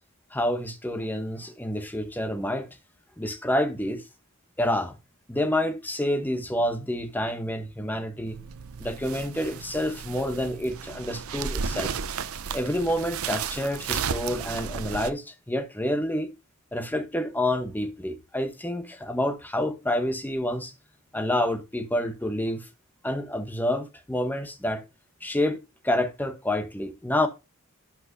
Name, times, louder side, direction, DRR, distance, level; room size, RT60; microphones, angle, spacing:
voice 1, 0.3-2.7 3.2-4.0 4.6-5.0 5.3-8.4 8.8-12.0 12.5-16.3 16.7-20.7 21.1-22.7 23.0-24.8 25.2-27.3, left 1 dB, 10° left, 1.0 m, -28 dB
sound 1, 8.3-15.1, right 6 dB, 70° right, 0.6 m, -34 dB
11.5 x 5.9 x 2.7 m
head